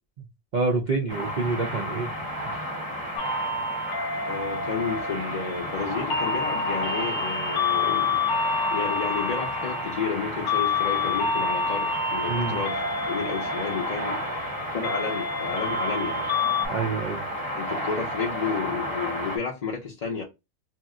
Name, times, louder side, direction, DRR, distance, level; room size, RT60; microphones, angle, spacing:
voice 1, 0.5-2.1 12.3-12.6 16.7-17.2, right 3 dB, 50° right, 0.6 m, -27 dB
sound 1, 1.1-19.4, equal, 20° right, 0.8 m, -32 dB
sound 2, 3.2-16.7, left 3 dB, 85° left, 1.0 m, -29 dB
voice 2, 4.3-8.2 8.7-12.8 13.1-14.2 14.7-16.3 17.5-20.2, left 6 dB, 45° left, 0.6 m, -31 dB
2.8 x 2.1 x 3.6 m
omnidirectional pair, 1.2 m